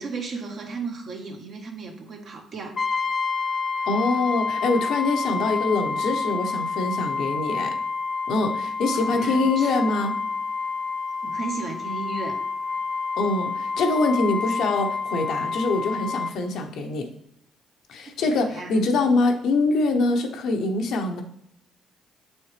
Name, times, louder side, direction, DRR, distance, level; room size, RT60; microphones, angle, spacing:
voice 1, 0.0-2.8 8.9-9.8 11.2-12.4 18.0-18.8, right 4 dB, 55° right, 2 dB, 1.3 m, -35 dB
Brass instrument, 2.8-16.4, left 4 dB, 40° left, 0.5 m, -28 dB
voice 2, 3.9-7.8 8.3-10.1 13.2-17.1 17.9-21.2, left 3 dB, 70° left, 4 dB, 0.8 m, -24 dB
6.9 x 4.2 x 3.3 m, 0.73 s
supercardioid pair, 65°, 0 cm